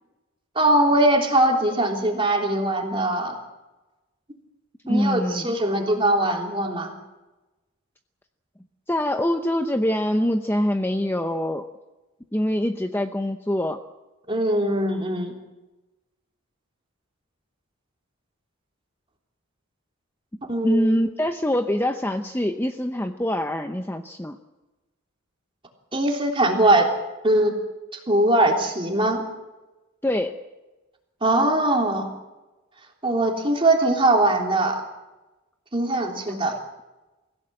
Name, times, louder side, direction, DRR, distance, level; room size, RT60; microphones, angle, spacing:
voice 1, 0.5-3.3 4.9-6.9 14.3-15.3 20.5-21.0 25.9-26.9 27.2-27.5 27.9-29.2 31.2-32.1 33.0-34.8 35.7-36.5, right 1 dB, 25° right, 2 dB, 3.4 m, -21 dB
voice 2, 4.9-5.5 8.9-11.7 12.3-13.8 20.6-24.4 30.0-30.3 36.4-36.6, left 1 dB, 10° left, 6 dB, 0.8 m, -24 dB
24.5 x 16.5 x 7.8 m, 1.1 s
head